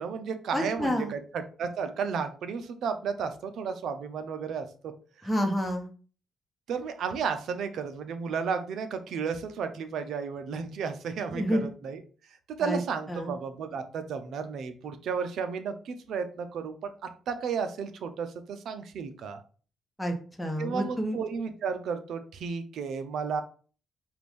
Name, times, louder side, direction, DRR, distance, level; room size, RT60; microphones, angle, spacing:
voice 1, 0.0-4.9 6.7-12.0 12.6-19.4 20.6-23.4, right 6 dB, 70° right, 8 dB, 0.7 m, -33 dB
voice 2, 0.5-1.1 5.2-5.9 11.3-11.6 12.6-12.8 13.1-13.3 20.0-21.2, equal, 5° left, 2 dB, 1.0 m, -29 dB
4.9 x 2.6 x 3.5 m, 0.39 s
cardioid pair, 90°, 0 cm